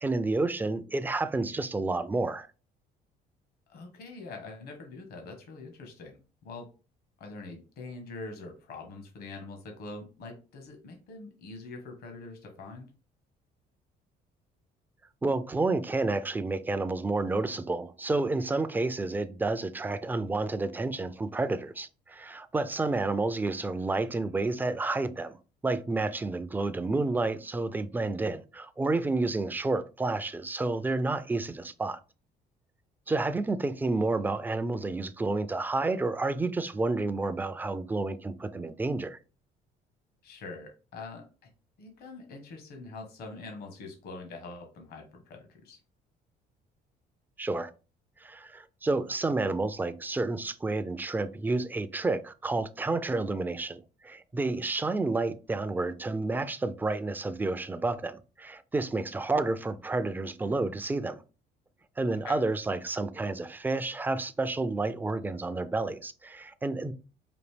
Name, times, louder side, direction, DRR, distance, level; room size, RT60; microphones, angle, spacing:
voice 1, 0.0-2.5 15.2-25.4 25.6-32.0 33.1-39.2 47.4-47.7 48.2-61.2 62.0-66.9, right 3 dB, 10° right, 0.4 m, -30 dB
voice 2, 3.7-6.7 7.2-12.9 40.2-41.5 41.8-45.8 62.2-62.4, left 3 dB, 70° left, 1.2 m, -44 dB
5.2 x 2.6 x 3.3 m
cardioid pair, 110°, 17 cm